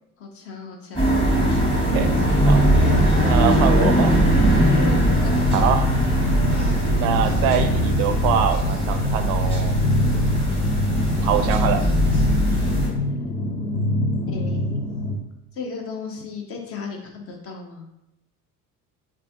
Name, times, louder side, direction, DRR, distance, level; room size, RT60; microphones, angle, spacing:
voice 1, 0.2-1.2 2.2-2.5 4.7-5.5 14.3-14.8 15.5-17.9, left 5 dB, 30° left, 1 dB, 0.5 m, -34 dB
sound 1, 1.0-12.9, equal, 10° left, 1.2 m, -20 dB
voice 2, 3.2-4.3 5.5-5.9 7.0-9.8 10.5-10.6 11.2-11.8, right 8 dB, 45° right, 8 dB, 0.4 m, -24 dB
sound 2, 3.8-15.2, left 1 dB, 80° left, 0.6 m, -25 dB
3.3 x 3.1 x 2.6 m, 0.85 s
figure-of-eight pair, 60°, 46 cm